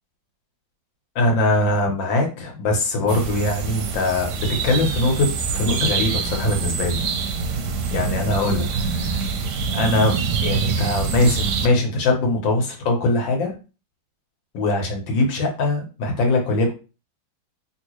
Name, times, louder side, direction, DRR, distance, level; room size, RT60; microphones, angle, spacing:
voice 1, 1.1-7.0 7.9-9.2 9.7-13.5 14.5-16.7, left 2 dB, 70° left, 2 dB, 1.6 m, -22 dB
sound 1, 3.1-11.7, right 5 dB, 70° right, 1.1 m, -25 dB
3.5 x 2.7 x 3.0 m, 0.33 s
omnidirectional pair, 2.2 m